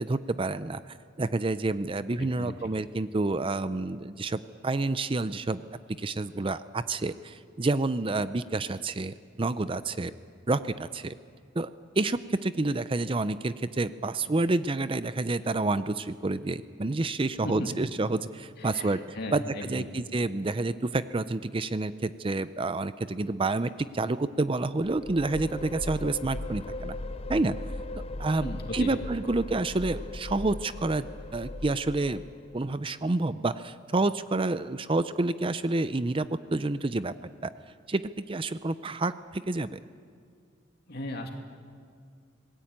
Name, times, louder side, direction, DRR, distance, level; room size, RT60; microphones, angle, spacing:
voice 1, 0.0-5.6 6.0-10.1 10.5-11.1 11.6-11.7 12.0-27.0 27.3-27.6 28.2-31.1 31.3-32.2 32.5-37.1 37.4-37.5 37.9-38.0 38.3-39.8, right 2 dB, 25° right, 13 dB, 0.5 m, -29 dB
voice 2, 2.2-2.7 17.4-17.7 18.6-19.9 28.4-28.9 40.9-41.3, left 1 dB, 55° left, 3 dB, 2.8 m, -37 dB
sound 1, 24.8-32.7, left 2 dB, 30° left, 0.6 m, -38 dB
26.0 x 19.5 x 8.8 m, 2.2 s
head